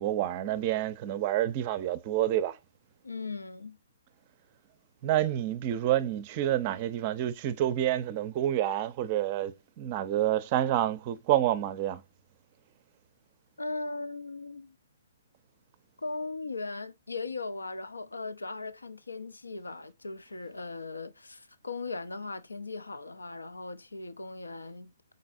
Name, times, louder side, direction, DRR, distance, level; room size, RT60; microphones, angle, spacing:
voice 1, 0.0-2.6 5.0-12.0, right 12 dB, 35° right, 0.5 m, -28 dB
voice 2, 3.0-3.8 13.6-14.8 16.0-25.1, left 3 dB, 85° left, 0.4 m, -38 dB
4.0 x 3.9 x 2.4 m
figure-of-eight pair, 130°, 0 cm